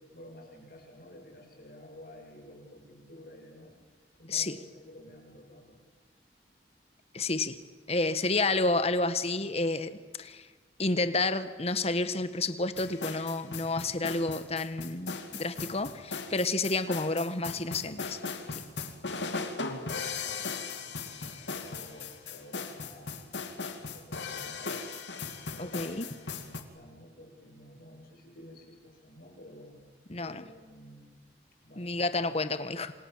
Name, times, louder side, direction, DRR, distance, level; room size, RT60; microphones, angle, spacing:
voice 1, 0.1-3.8 4.2-5.8 20.2-20.5 20.8-23.3 23.9-24.8 25.5-29.8 30.2-31.1 31.6-32.3, left 1 dB, 55° left, 1 dB, 7.5 m, -51 dB
voice 2, 7.1-7.6 7.9-10.4 10.8-18.2 25.6-26.1 30.1-30.4 31.8-32.9, left 3 dB, 35° left, 12 dB, 1.4 m, -30 dB
sound 1, 12.7-26.6, left 4 dB, 80° left, 2.6 m, -38 dB
28.0 x 27.0 x 7.5 m, 1.4 s
head